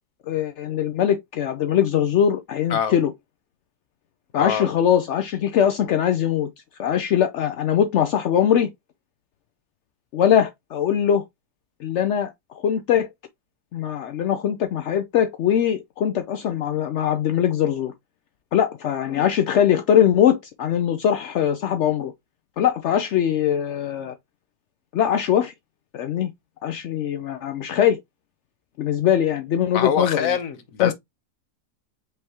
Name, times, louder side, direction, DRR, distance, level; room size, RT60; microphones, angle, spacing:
voice 1, 0.3-3.1 4.3-6.5 6.8-8.7 10.1-11.2 11.8-13.1 13.7-17.9 18.5-22.1 22.6-24.1 24.9-25.5 25.9-26.3 26.6-28.0 28.8-30.4 30.8-30.9, left 9 dB, 80° left, 0.6 m, -21 dB
voice 2, 4.4-4.7 29.7-30.9, left 7 dB, 60° left, 1.1 m, -24 dB
5.4 x 3.3 x 2.8 m
omnidirectional pair, 1.8 m